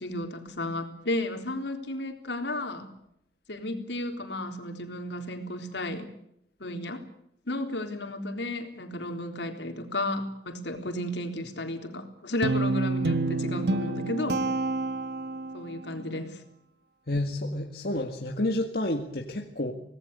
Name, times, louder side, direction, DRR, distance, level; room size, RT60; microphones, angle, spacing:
voice 1, 0.0-2.9 3.5-6.1 6.6-7.0 7.5-14.4 15.5-16.4, left 1 dB, 80° left, 5 dB, 3.8 m, -33 dB
Guitar, 12.4-15.7, right 2 dB, 70° right, 1.5 m, -28 dB
voice 2, 17.1-19.7, left 1 dB, 55° left, 2 dB, 2.0 m, -30 dB
25.5 x 19.0 x 8.2 m, 0.75 s
head